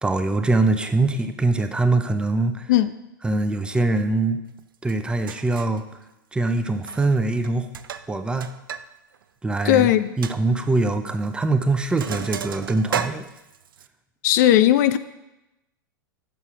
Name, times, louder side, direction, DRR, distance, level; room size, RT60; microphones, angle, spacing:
voice 1, 0.0-2.7 3.2-4.4 4.8-5.8 6.3-7.7 8.1-8.5 9.4-9.9 10.2-13.3, right 2 dB, 10° right, 8 dB, 0.6 m, -23 dB
Sink (filling or washing), 4.9-5.0 5.3-5.8 6.8-7.2 7.4-8.8 9.1-9.2 9.7-9.8 10.2-10.4 11.2-11.4 11.7-13.9, right 8 dB, 85° right, 0.4 m, -33 dB
voice 2, 9.6-10.1 14.2-15.0, left 13 dB, 55° left, 13 dB, 0.4 m, -17 dB
6.8 x 5.6 x 4.8 m, 0.96 s
hypercardioid pair, 105°, 11 cm